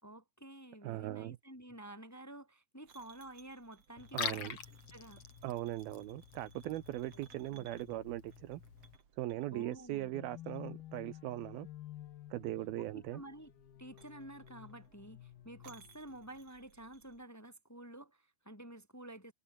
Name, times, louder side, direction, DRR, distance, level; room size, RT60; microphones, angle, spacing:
voice 1, 0.0-4.6 4.9-5.2 7.5-7.7 9.5-10.1 12.8-13.5 13.8-19.3, right 1 dB, 5° left, 2.0 m, -51 dB
voice 2, 0.8-1.4 4.1-4.6 5.4-8.6 9.2-11.7 12.3-13.2, right 15 dB, 75° right, 2.5 m, -39 dB
sound 1, 2.9-17.3, right 6 dB, 40° right, 3.2 m, -64 dB
Liquid, 4.0-9.0, left 7 dB, 45° left, 2.6 m, -45 dB
sound 2, 10.1-16.4, left 14 dB, 70° left, 3.0 m, -52 dB
omnidirectional pair, 4.8 m